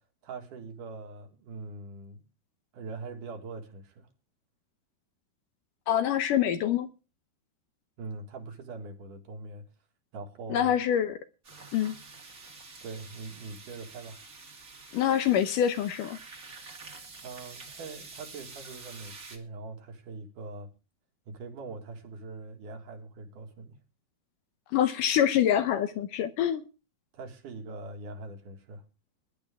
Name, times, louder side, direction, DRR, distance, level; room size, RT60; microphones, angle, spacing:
voice 1, 0.2-2.2 2.7-4.1 8.0-9.7 10.1-10.7 12.8-14.2 17.2-20.7 21.3-23.8 27.1-28.8, right 3 dB, 60° right, 3.4 m, -42 dB
voice 2, 5.9-6.9 10.5-11.2 11.7-12.0 14.9-16.2 24.7-26.6, left 10 dB, 70° left, 2.2 m, -25 dB
sound 1, 11.4-19.4, right 4 dB, 30° right, 2.0 m, -48 dB
20.5 x 11.0 x 3.6 m
omnidirectional pair, 4.2 m